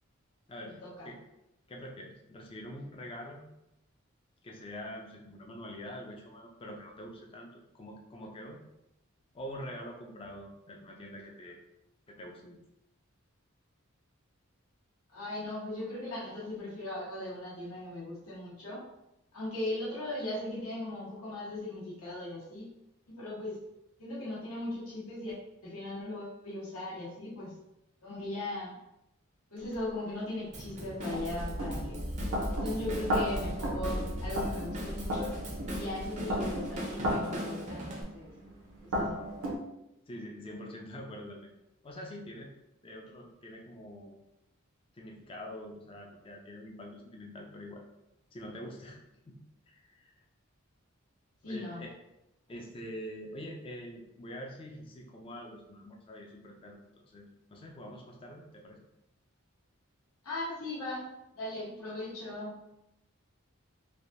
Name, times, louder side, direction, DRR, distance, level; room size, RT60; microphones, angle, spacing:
voice 1, 0.5-1.2 1.7-3.5 4.4-8.6 9.3-11.6 12.1-12.6 40.1-41.5 41.8-42.5 42.8-44.1 44.9-47.8 48.3-49.4 49.7-50.1 51.4-51.9 52.5-56.8 57.1-58.8, equal, 25° left, 0 dB, 0.4 m, -45 dB
voice 2, 15.1-18.8 19.3-22.7 23.1-23.6 24.0-25.4 25.6-27.5 28.0-28.8 29.5-32.1 32.5-35.3 35.7-38.3 38.8-39.2 51.4-51.8 60.2-61.1 61.4-62.6, left 1 dB, 85° left, -6 dB, 1.1 m, -38 dB
sound 1, 29.7-29.8 30.5-39.5, equal, 75° right, 0.7 m, -34 dB
Drum kit / Drum, 30.5-38.0, equal, 30° right, 0.5 m, -41 dB
3.3 x 2.5 x 2.5 m, 0.87 s
head